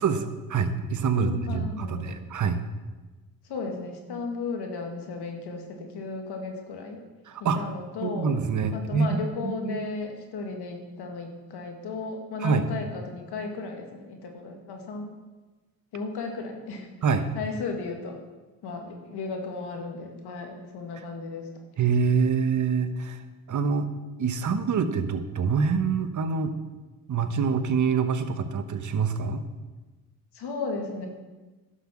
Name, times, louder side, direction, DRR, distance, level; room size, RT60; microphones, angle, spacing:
voice 1, 0.0-2.6 7.3-7.6 8.0-9.9 12.4-12.6 17.0-17.3 21.8-23.2 23.5-23.9 24.2-26.5 27.1-29.4, right 5 dB, 45° right, 9 dB, 1.1 m, -26 dB
voice 2, 1.1-2.1 3.5-7.0 7.6-8.4 8.7-15.1 15.9-16.9 17.3-18.2 18.6-21.5 30.3-31.1, left 4 dB, 75° left, 3 dB, 2.0 m, -35 dB
11.5 x 5.8 x 6.1 m, 1.2 s
cardioid pair, 80°, 40 cm